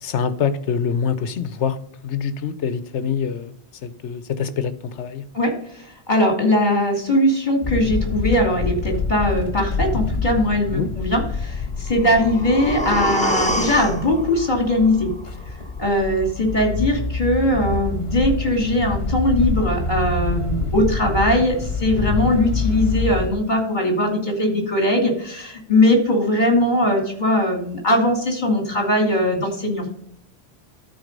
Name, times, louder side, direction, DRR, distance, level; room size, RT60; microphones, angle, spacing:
voice 1, 0.0-1.8 2.0-3.5 3.8-5.2 10.7-10.9 22.1-22.3, left 7 dB, 85° left, 13 dB, 1.1 m, -25 dB
voice 2, 5.3-15.1 15.8-29.9, left 1 dB, 40° left, 3 dB, 2.8 m, -20 dB
sound 1, 7.6-23.3, left 4 dB, 65° left, 1.6 m, -26 dB
sound 2, 11.9-15.9 16.2-16.3, equal, 10° left, 0.6 m, -27 dB
12.5 x 4.5 x 5.3 m, 0.66 s
omnidirectional pair, 1.1 m